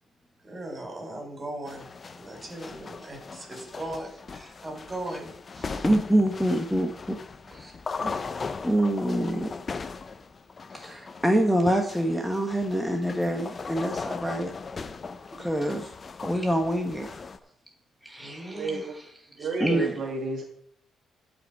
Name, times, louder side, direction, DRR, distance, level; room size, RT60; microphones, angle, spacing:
voice 1, 0.4-1.9 2.1-5.9 8.0-8.2 18.2-18.8, right 1 dB, 30° right, 2 dB, 4.2 m, -38 dB
sound 1, 1.7-17.4, left 4 dB, 35° left, 0.7 m, -39 dB
voice 2, 5.8-7.2 7.5-7.7 8.6-9.5 10.7-14.5 15.4-15.9 16.2-17.1 18.0-19.0 19.4-20.0, right 1 dB, ahead, 2 dB, 1.1 m, -26 dB
voice 3, 18.5-18.9 19.4-20.4, right 3 dB, 65° right, 1 dB, 1.9 m, -31 dB
15.0 x 5.2 x 4.8 m, 0.68 s
cardioid pair, 90°, 0 cm